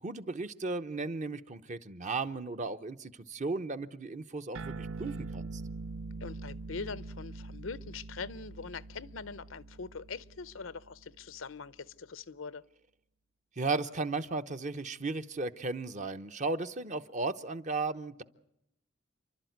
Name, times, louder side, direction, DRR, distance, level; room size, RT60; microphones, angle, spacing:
voice 1, 0.0-5.6 13.6-18.2, right 3 dB, 40° right, 0.9 m, -35 dB
sound 1, 4.5-11.4, right 3 dB, 80° right, 0.7 m, -43 dB
voice 2, 6.2-12.6, left 4 dB, 75° left, 0.7 m, -42 dB
29.5 x 12.0 x 9.4 m
head